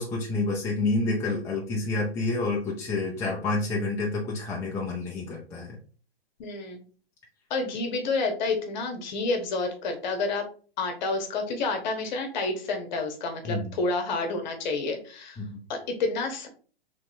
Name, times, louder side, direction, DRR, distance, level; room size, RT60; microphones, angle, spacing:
voice 1, 0.0-5.8 13.4-13.8 15.4-15.6, left 2 dB, 10° left, -3 dB, 0.5 m, -29 dB
voice 2, 6.4-6.8 7.5-10.5 10.8-15.4 15.7-16.5, left 3 dB, 45° left, 4 dB, 1.1 m, -29 dB
4.1 x 3.3 x 2.6 m, 0.40 s
figure-of-eight pair, 120°, 30 cm